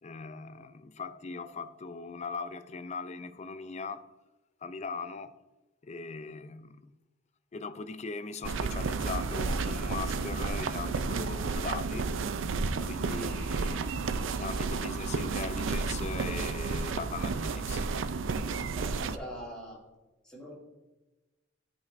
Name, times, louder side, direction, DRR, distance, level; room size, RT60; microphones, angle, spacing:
voice 1, 0.0-4.1 4.6-5.4 5.8-6.9 7.5-12.1 12.8-13.9 14.4-17.9, left 4 dB, 35° left, 0.4 m, -40 dB
sound 1, 8.4-19.2, right 4 dB, 80° right, 0.4 m, -32 dB
voice 2, 18.7-19.8 20.2-20.6, equal, 5° left, 2.6 m, -43 dB
14.0 x 5.3 x 2.6 m
head